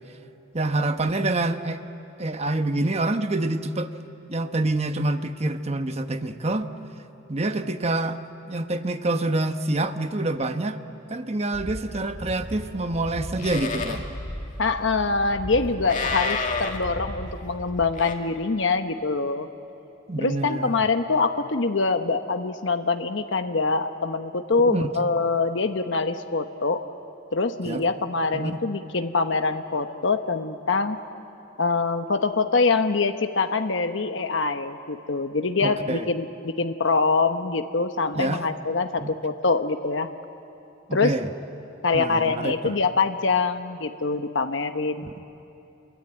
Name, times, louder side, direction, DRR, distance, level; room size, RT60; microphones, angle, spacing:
voice 1, 0.5-1.8 2.2-3.9 4.3-6.7 7.3-8.2 8.5-10.8 11.1-14.1 20.1-20.7 24.7-25.0 27.6-27.8 28.3-28.5 35.6-36.1 38.1-38.4 39.0-39.2 40.9-41.3 41.9-42.8 45.0-45.2, right 2 dB, 30° right, 8 dB, 1.0 m, -26 dB
Livestock farm animals working animals, 11.5-18.1, left 3 dB, 40° left, 2.1 m, -32 dB
voice 2, 14.6-19.5 20.2-26.8 27.3-31.0 31.6-40.1 40.9-41.2 41.8-45.1, left 4 dB, 65° left, 7 dB, 1.0 m, -24 dB
29.0 x 22.5 x 9.0 m, 2.8 s
head